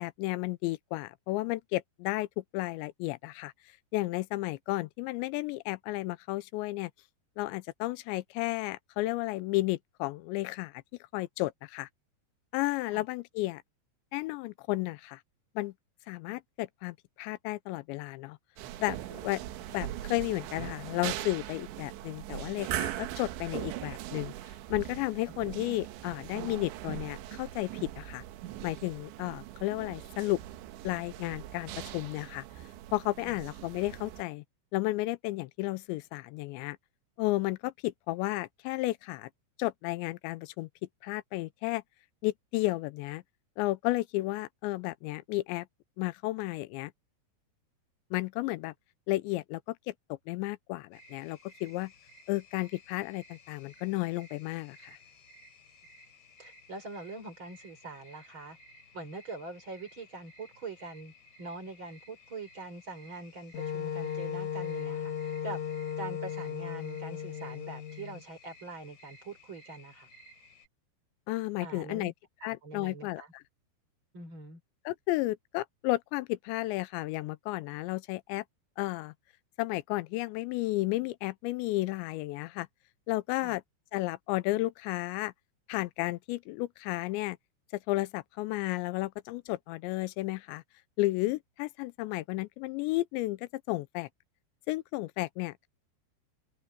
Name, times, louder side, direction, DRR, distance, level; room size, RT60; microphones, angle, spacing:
voice 1, 0.0-3.5 3.9-6.9 7.4-10.8 11.1-11.9 12.5-13.6 14.1-15.2 15.6-15.7 16.1-18.4 18.8-19.4 19.7-24.3 24.7-28.2 28.6-30.4 30.8-32.4 32.9-34.4 34.7-36.8 37.2-39.3 39.6-40.7 41.0-41.8 42.2-43.2 43.6-45.7 46.0-46.9 48.1-48.7 49.1-51.9 52.3-55.0 71.3-72.1 72.4-73.4 74.9-78.4 78.8-79.1 79.6-82.7 83.1-83.6 83.9-85.3 85.7-87.4 87.9-90.6 91.0-94.1 94.7-95.7, left 19 dB, 90° left, 2.9 m, -33 dB
sound 1, 18.6-34.2, right 13 dB, 85° right, 3.5 m, -40 dB
sound 2, 50.9-70.7, left 1 dB, 70° left, 8.3 m, -57 dB
voice 2, 56.4-58.6 58.9-61.1 61.4-65.6 66.0-70.1 71.6-72.1 72.4-73.3 74.1-74.6 83.4-83.5, right 3 dB, 30° right, 4.6 m, -43 dB
Wind instrument woodwind instrument, 63.5-68.2, left 8 dB, 50° left, 2.6 m, -36 dB
omnidirectional pair, 5.1 m